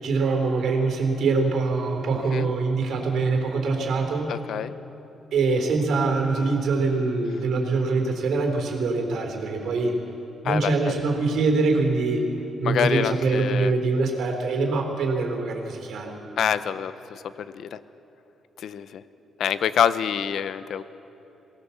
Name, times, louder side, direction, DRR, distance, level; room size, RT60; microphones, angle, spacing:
voice 1, 0.0-4.3 5.3-10.0 10.4-12.2 12.6-16.1, right 3 dB, 65° right, 3 dB, 3.7 m, -24 dB
voice 2, 2.1-2.5 4.3-4.7 10.4-10.9 12.6-13.7 16.4-17.8 18.6-19.0 19.4-20.8, left 8 dB, 60° left, 13 dB, 0.8 m, -26 dB
23.5 x 18.5 x 7.2 m, 3.0 s
cardioid pair, 150°, 0 cm